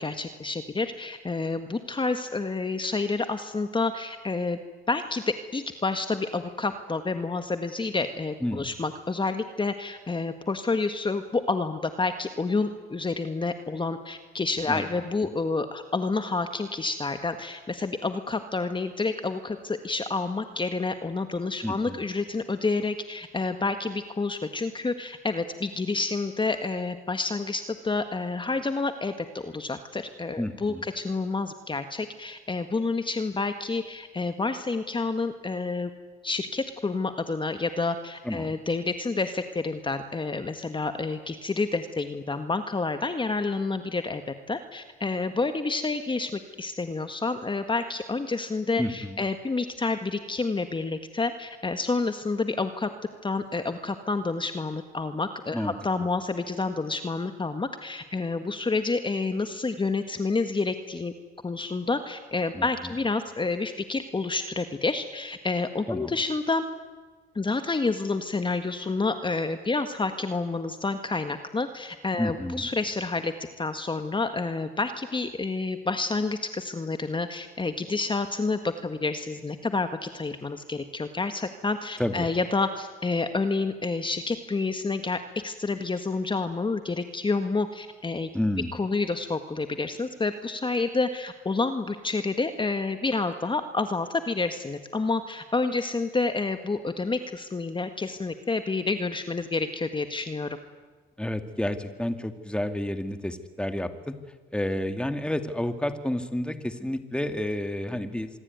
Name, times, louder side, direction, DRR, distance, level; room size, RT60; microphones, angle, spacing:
voice 1, 0.0-4.6 4.9-5.2 5.5-35.9 36.2-52.9 53.2-61.1 61.4-66.6 67.3-88.3 88.7-100.6, left 3 dB, 25° left, 8 dB, 1.7 m, -29 dB
voice 2, 21.6-22.0 30.4-30.9 38.2-38.6 48.8-49.2 55.5-55.7 62.5-62.9 65.9-66.2 72.2-72.7 82.0-82.3 88.3-88.7 101.2-104.2 104.5-108.3, left 1 dB, 5° left, 8 dB, 2.3 m, -30 dB
26.0 x 22.0 x 9.6 m, 1.3 s
cardioid pair, 90°, 20 cm